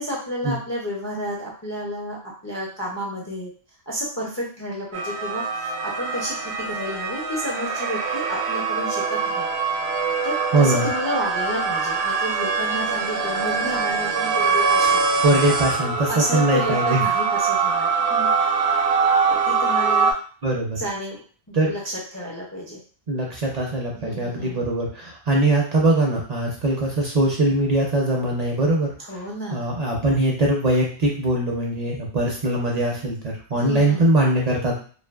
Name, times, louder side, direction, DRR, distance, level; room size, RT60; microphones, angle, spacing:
voice 1, 0.0-2.2 2.4-3.5 3.9-5.4 5.8-9.5 10.2-15.0 16.1-18.8 19.3-20.1 20.7-21.2 21.6-22.8 24.0-24.6 29.0-29.7 33.5-34.0, equal, 25° left, -4 dB, 0.4 m, -31 dB
sound 1, 4.9-20.1, right 5 dB, 80° right, 0.8 m, -23 dB
voice 2, 10.5-10.9 15.2-17.0 20.4-20.8 21.5-21.7 23.1-28.9 29.5-34.8, right 2 dB, 50° right, -2 dB, 0.6 m, -21 dB
2.5 x 2.4 x 2.3 m, 0.41 s
omnidirectional pair, 1.1 m